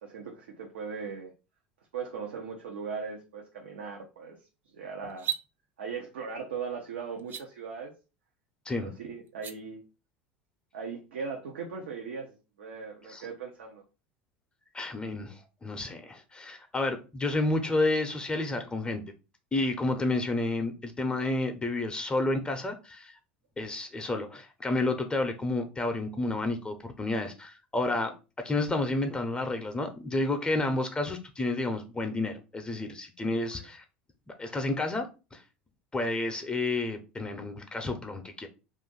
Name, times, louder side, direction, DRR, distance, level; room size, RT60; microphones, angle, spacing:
voice 1, 0.0-1.3 1.9-4.4 4.7-5.3 5.8-7.9 8.8-9.8 10.7-13.8 30.5-30.7 33.6-33.7, right 5 dB, 80° right, 0.6 m, -39 dB
sound 1, 5.1-5.5 7.2-7.4 9.3-9.5, right 11 dB, 35° right, 0.5 m, -33 dB
voice 2, 14.7-19.0 19.5-23.1 23.6-33.8 34.3-35.4 35.9-38.5, left 2 dB, 15° left, 0.6 m, -30 dB
2.5 x 2.4 x 3.7 m
hypercardioid pair, 80°, 6 cm